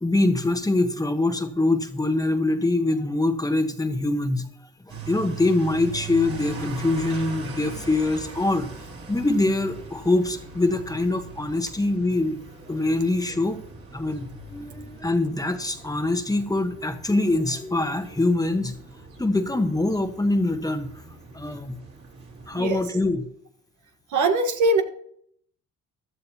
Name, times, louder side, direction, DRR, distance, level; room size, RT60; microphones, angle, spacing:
voice 1, 0.0-4.4 5.1-8.7 9.1-12.4 12.7-13.6 13.9-18.8 19.2-20.9 21.3-21.8 22.5-23.3, left 2 dB, 10° left, 7 dB, 1.3 m, -24 dB
sound 1, 4.9-22.9, right 3 dB, 50° right, 3.8 m, -41 dB
voice 2, 24.1-24.8, right 2 dB, 75° right, 5 dB, 1.6 m, -21 dB
15.5 x 12.5 x 3.0 m, 0.67 s
cardioid pair, 90°, 30 cm